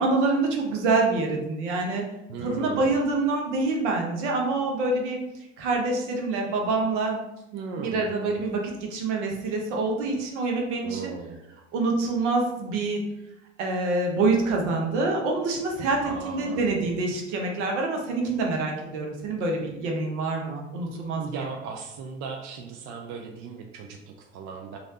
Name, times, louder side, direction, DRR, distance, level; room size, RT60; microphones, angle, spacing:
voice 1, 0.0-2.0 2.4-5.2 5.6-7.2 7.8-11.1 11.7-13.0 13.6-21.4, right 3 dB, 75° right, 1 dB, 0.9 m, -26 dB
voice 2, 2.3-3.0 7.5-8.3 10.8-11.4 16.0-16.6 21.2-24.8, right 5 dB, 50° right, 3 dB, 0.5 m, -37 dB
3.1 x 2.7 x 2.8 m, 0.89 s
hypercardioid pair, 80°, 35 cm